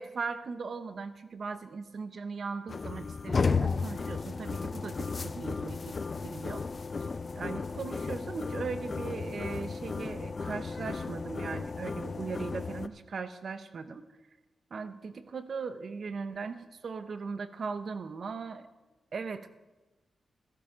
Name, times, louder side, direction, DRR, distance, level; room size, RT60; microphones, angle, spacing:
voice 1, 0.0-6.0 6.2-6.7 7.3-14.1 14.7-18.7 19.1-19.5, right 5 dB, 65° right, 11 dB, 0.8 m, -38 dB
sound 1, 2.7-12.9, left 4 dB, 45° left, 0.6 m, -34 dB
15.0 x 9.7 x 5.1 m, 1.2 s
cardioid pair, 60°, 0 cm